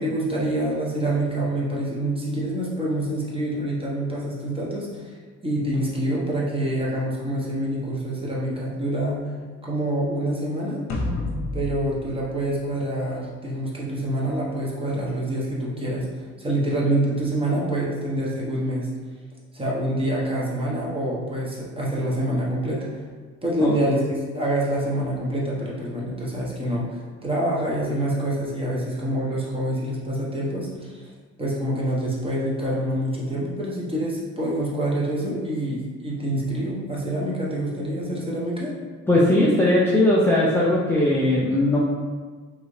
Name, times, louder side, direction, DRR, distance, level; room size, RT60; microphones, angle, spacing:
voice 1, 0.0-5.1 5.4-9.2 9.6-10.8 11.5-16.1 16.4-18.9 19.5-23.0 23.4-24.0 24.3-26.8 27.2-31.0 31.4-38.7, right 1 dB, 20° right, -5 dB, 1.0 m, -26 dB
sound 1, 10.9-13.4, left 2 dB, 75° left, 0.7 m, -30 dB
voice 2, 39.1-41.8, left 1 dB, 5° left, -6 dB, 0.5 m, -19 dB
3.2 x 2.7 x 3.1 m, 1.5 s
cardioid pair, 90°, 30 cm